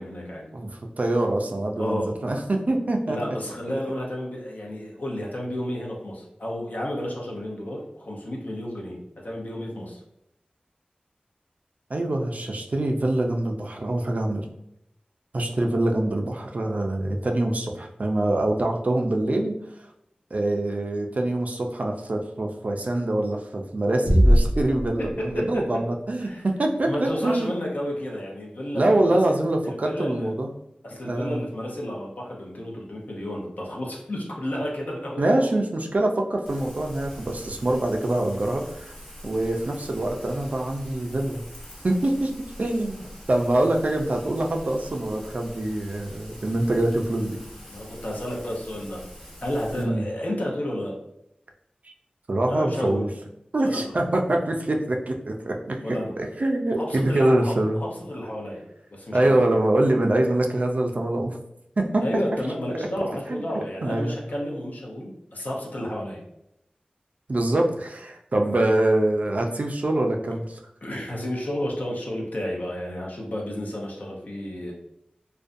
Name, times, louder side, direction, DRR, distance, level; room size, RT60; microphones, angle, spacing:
voice 1, 0.0-0.5 1.8-2.1 3.1-9.0 9.2-10.0 25.0-25.6 26.2-26.4 26.9-28.9 29.3-29.4 29.7-30.3 30.8-35.5 47.7-49.0 49.4-50.9 52.5-53.1 53.6-53.9 55.8-56.1 56.8-58.6 58.9-59.4 62.0-66.2 68.5-68.7 70.8-74.7, left 1 dB, 65° left, -2 dB, 0.6 m, -31 dB
voice 2, 0.5-3.2 3.7-3.8 11.9-14.5 15.3-19.5 20.3-27.5 28.7-30.5 31.0-31.4 35.2-38.9 39.2-41.4 41.8-47.4 49.8-50.0 51.8-51.9 52.3-53.1 53.5-57.8 59.1-61.4 61.8-62.1 62.7-62.9 63.3-64.2 67.3-70.6, right 1 dB, 55° right, 2 dB, 0.3 m, -24 dB
sound 1, 24.0-25.8, equal, 35° left, 1.1 m, -20 dB
Rain, 36.4-49.8, equal, 10° left, 0.7 m, -44 dB
2.5 x 2.2 x 2.5 m, 0.81 s
wide cardioid pair, 60°, 3 cm